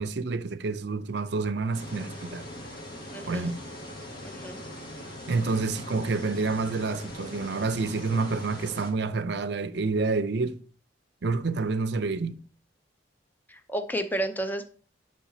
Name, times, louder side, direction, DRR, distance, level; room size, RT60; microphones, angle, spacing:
voice 1, 0.0-2.5 3.3-3.6 5.3-10.6 11.2-12.4, right 4 dB, 60° right, 0.5 m, -28 dB
sound 1, 1.7-8.9, left 1 dB, 55° left, 1.7 m, -41 dB
voice 2, 3.1-3.5 4.2-4.6 13.5-14.7, right 1 dB, 10° left, 0.6 m, -32 dB
10.0 x 5.7 x 2.8 m
head